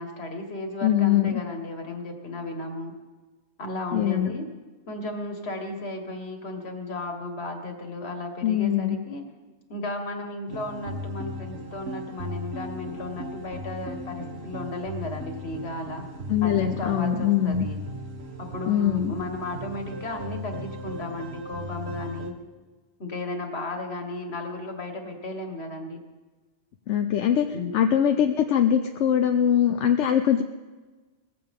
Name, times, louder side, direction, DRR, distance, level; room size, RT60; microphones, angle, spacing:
voice 1, 0.0-2.9 3.6-4.5 4.9-9.2 9.7-16.1 16.4-17.8 18.4-22.3 23.0-26.0 27.5-27.7, left 2 dB, 65° left, 4 dB, 1.9 m, -34 dB
voice 2, 0.8-1.4 3.9-4.3 8.4-9.0 16.3-17.7 18.7-19.1 26.9-27.5 27.7-30.4, left 9 dB, 85° left, 6 dB, 1.0 m, -22 dB
sound 1, 10.5-22.3, equal, 65° right, 1.5 m, -37 dB
19.5 x 15.5 x 3.7 m, 1.3 s
omnidirectional pair, 1.2 m